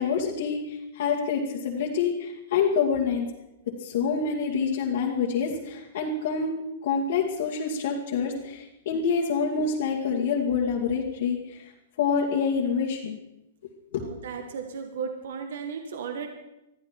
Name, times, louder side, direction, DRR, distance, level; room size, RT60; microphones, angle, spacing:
voice 1, 0.0-3.3 3.8-6.5 6.8-11.7 12.0-13.2 13.9-14.0, left 6 dB, 60° left, -4 dB, 2.3 m, -27 dB
voice 2, 14.0-16.3, right 6 dB, 70° right, 5 dB, 1.8 m, -35 dB
21.5 x 13.5 x 4.5 m, 0.93 s
hypercardioid pair, 165°, 0 cm